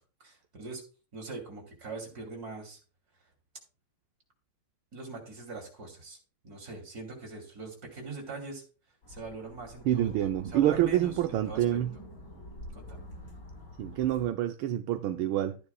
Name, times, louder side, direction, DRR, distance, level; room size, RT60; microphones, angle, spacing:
voice 1, 0.2-0.8 1.1-2.8 4.9-6.2 6.4-8.6 9.1-11.8 12.7-13.0, right 3 dB, 45° right, 3.5 m, -42 dB
sound 1, 9.0-14.3, left 1 dB, 50° left, 5.4 m, -47 dB
voice 2, 9.9-11.9 13.8-15.6, right 12 dB, 75° right, 1.4 m, -27 dB
14.0 x 9.5 x 2.3 m
omnidirectional pair, 2.4 m